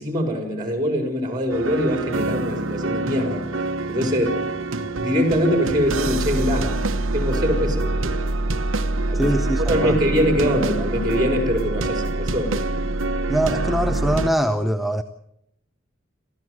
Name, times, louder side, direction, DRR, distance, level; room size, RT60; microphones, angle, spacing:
voice 1, 0.0-3.5 3.9-4.4 5.0-6.7 7.1-8.2 9.1-9.2 9.7-12.9, equal, 20° right, 4 dB, 4.6 m, -23 dB
sound 1, 1.5-14.3, right 2 dB, 80° right, 1.1 m, -25 dB
voice 2, 9.1-10.0 13.3-15.0, equal, ahead, 7 dB, 0.8 m, -23 dB
27.5 x 15.0 x 7.8 m, 0.77 s
head